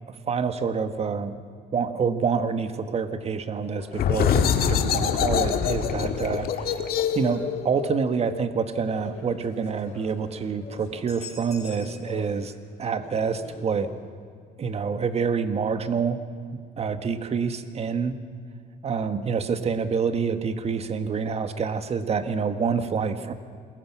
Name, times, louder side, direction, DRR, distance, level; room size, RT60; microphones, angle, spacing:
voice 1, 0.1-1.4 1.7-6.8 7.1-12.5 12.8-14.0 14.6-16.2 16.8-18.2 18.8-23.3, right 5 dB, 40° right, 9 dB, 1.6 m, -27 dB
sound 1, 3.5-12.5 12.8-14.1, left 4 dB, 35° left, 7.5 m, -45 dB
sound 2, 3.9-9.3, left 8 dB, 65° left, 1.9 m, -25 dB
28.0 x 21.5 x 6.1 m, 2.2 s
cardioid pair, 110°, 17 cm